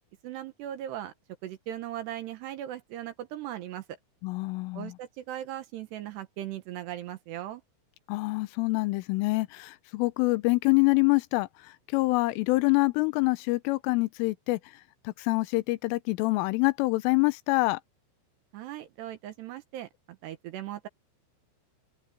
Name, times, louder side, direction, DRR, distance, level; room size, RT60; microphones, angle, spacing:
voice 1, 0.2-1.1 1.4-4.0 4.7-7.6 18.5-20.9, right 12 dB, 70° right, 2.9 m, -38 dB
voice 2, 4.2-4.9 8.1-14.6 15.0-17.8, left 24 dB, 90° left, 3.2 m, -26 dB
omnidirectional pair, 5.7 m